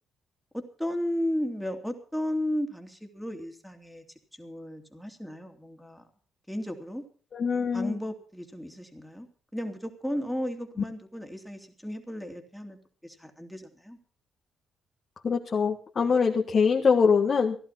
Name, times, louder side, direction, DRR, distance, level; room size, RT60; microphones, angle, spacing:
voice 1, 0.5-4.0 4.3-6.1 6.5-7.0 7.7-9.3 9.5-14.0, equal, ahead, 4 dB, 2.8 m, -34 dB
voice 2, 7.3-8.0 15.2-17.6, left 5 dB, 45° left, 1 dB, 1.7 m, -23 dB
16.5 x 11.5 x 5.9 m, 0.41 s
cardioid pair, 90°, 0 cm